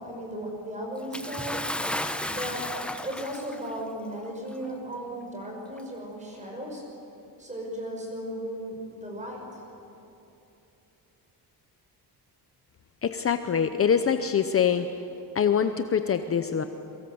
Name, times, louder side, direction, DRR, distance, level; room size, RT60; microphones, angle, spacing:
voice 1, 0.0-1.6 2.3-2.7 3.0-6.8 7.4-9.6, equal, 20° right, 0 dB, 5.8 m, -36 dB
Bathtub (filling or washing) / Splash splatter, 1.1-3.7 4.7-4.8 5.7-5.8, left 1 dB, 5° left, 0.8 m, -33 dB
voice 2, 13.0-14.9 15.3-16.6, left 7 dB, 35° left, 9 dB, 0.8 m, -24 dB
28.5 x 23.5 x 7.9 m, 2.8 s
wide cardioid pair, 170°, 39 cm